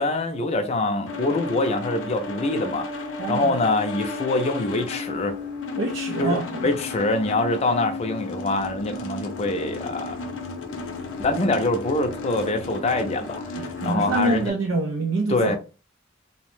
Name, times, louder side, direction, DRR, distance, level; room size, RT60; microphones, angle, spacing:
voice 1, 0.0-2.9 3.3-5.4 6.2-6.4 6.6-10.2 11.2-14.5 15.3-15.6, left 2 dB, 30° left, 0.4 m, -24 dB
sound 1, 1.1-14.5, left 3 dB, 85° left, 0.6 m, -33 dB
voice 2, 3.2-3.5 5.8-6.7 13.5-15.6, right 2 dB, 80° right, 0.4 m, -26 dB
2.7 x 2.1 x 3.1 m
head